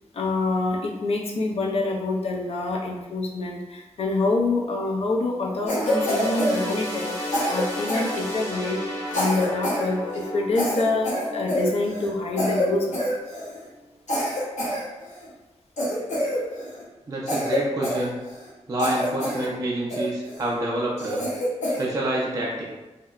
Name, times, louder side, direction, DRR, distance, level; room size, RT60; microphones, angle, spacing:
voice 1, 0.1-13.0, left 2 dB, 55° left, -1 dB, 0.4 m, -26 dB
sound 1, 5.6-13.3 13.7-13.9 14.7-14.8, left 1 dB, 20° left, 0.8 m, -33 dB
Cough, 5.7-7.1 7.3-8.6 9.1-9.9 10.1-10.3 10.5-12.1 12.4-12.7 12.9-13.6 14.1-15.3 15.8-16.8 17.3-18.5 18.8-19.5 19.9-20.4 21.0-21.9, left 1 dB, 75° left, 0.8 m, -27 dB
voice 2, 17.1-18.2 18.7-21.2 21.8-22.7, right 1 dB, 30° right, -4 dB, 0.4 m, -28 dB
2.7 x 2.1 x 2.3 m, 1.1 s
wide cardioid pair, 135°, 12 cm